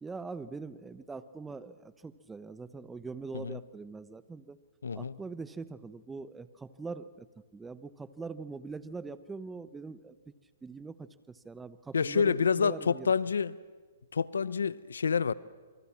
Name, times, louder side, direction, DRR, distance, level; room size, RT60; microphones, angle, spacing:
voice 1, 0.0-4.6 4.9-7.3 7.5-10.3 10.6-13.1, right 4 dB, 10° right, 0.9 m, -43 dB
voice 2, 4.8-5.2 11.9-13.6 14.1-15.3, left 6 dB, 90° left, 0.8 m, -28 dB
26.0 x 25.5 x 7.4 m
hypercardioid pair, 140°, 0 cm